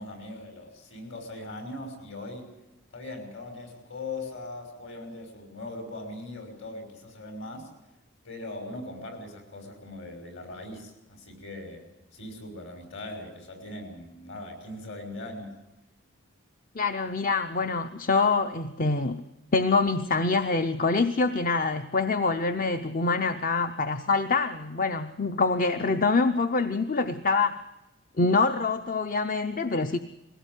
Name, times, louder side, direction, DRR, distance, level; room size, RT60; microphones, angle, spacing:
voice 1, 0.0-2.5 2.9-7.7 8.2-11.8 12.1-15.5, left 2 dB, 60° left, 5 dB, 6.0 m, -40 dB
voice 2, 16.7-19.2 19.5-27.6 28.2-30.0, left 3 dB, 40° left, 9 dB, 0.7 m, -25 dB
21.5 x 17.5 x 9.1 m, 0.99 s
head